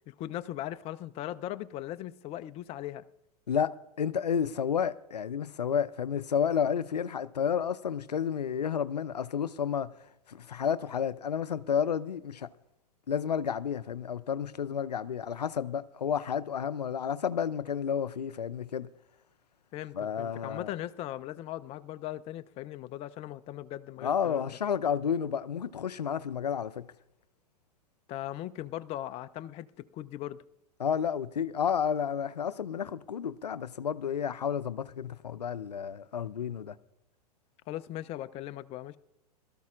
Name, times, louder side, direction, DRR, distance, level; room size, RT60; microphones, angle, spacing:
voice 1, 0.1-3.0 19.7-24.5 28.1-30.4 37.7-39.0, left 13 dB, 30° left, 0.6 m, -39 dB
voice 2, 3.5-9.9 10.3-12.5 13.1-18.9 19.9-20.7 24.0-26.9 30.8-36.7, left 7 dB, 80° left, 0.6 m, -31 dB
21.5 x 13.5 x 2.5 m
figure-of-eight pair, 105°, 21 cm